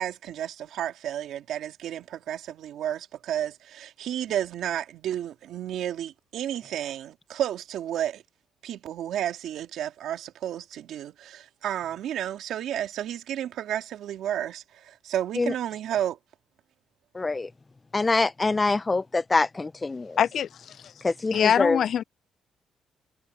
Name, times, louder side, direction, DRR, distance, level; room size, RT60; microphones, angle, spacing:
voice 1, 0.0-8.2 8.6-16.2, right 11 dB, 75° right, 2.3 m, -32 dB
voice 2, 17.1-17.5 17.9-20.2 21.0-21.8, left 3 dB, 25° left, 0.7 m, -25 dB
voice 3, 20.2-20.9 21.3-22.0, left 9 dB, 60° left, 0.4 m, -24 dB
cardioid pair, 90°, 0 cm